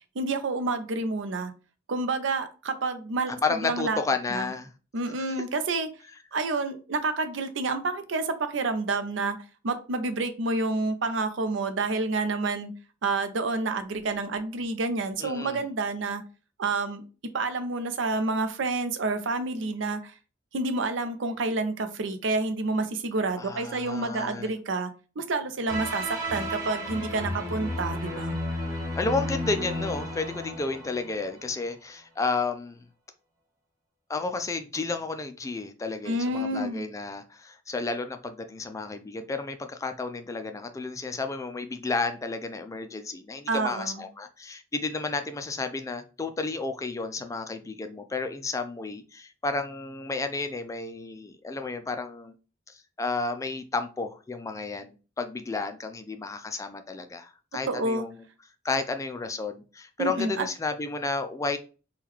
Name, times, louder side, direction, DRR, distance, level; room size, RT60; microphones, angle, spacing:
voice 1, 0.2-1.5 1.9-4.0 4.3-4.5 4.9-5.9 6.3-9.4 9.6-12.7 13.0-16.2 16.6-17.0 17.3-20.1 20.5-24.9 25.2-28.4 36.1-36.8 43.5-44.0 57.7-58.0 60.0-60.5, right 3 dB, 80° right, 0.5 m, -29 dB
voice 2, 3.4-4.7 15.2-15.6 23.4-24.6 29.0-32.9 34.1-52.3 52.7-58.1 58.6-61.6, left 3 dB, 15° left, 0.3 m, -32 dB
sound 1, 25.7-31.4, left 1 dB, 15° right, 1.1 m, -33 dB
3.6 x 2.3 x 3.0 m
head